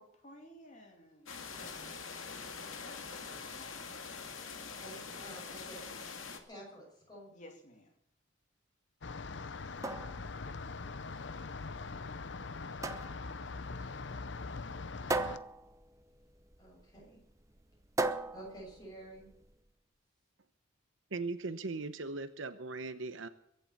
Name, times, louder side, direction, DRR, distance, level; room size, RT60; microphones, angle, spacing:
voice 1, 0.0-2.0 2.8-4.0 7.3-7.9, left 1 dB, 35° left, 2 dB, 3.0 m, -56 dB
sound 1, 1.3-6.4, left 5 dB, 85° left, 2.1 m, -44 dB
voice 2, 1.5-1.9 4.8-5.8 6.5-7.3 13.4-13.9 16.6-17.2 18.3-19.3, right 1 dB, 20° left, -2 dB, 7.0 m, -51 dB
sound 2, 9.0-15.4, left 4 dB, 60° left, 0.7 m, -42 dB
sound 3, 9.5-19.5, right 2 dB, 15° right, 0.7 m, -40 dB
voice 3, 21.1-23.3, right 3 dB, 75° right, 10 dB, 0.9 m, -39 dB
22.5 x 7.8 x 7.2 m, 0.73 s
head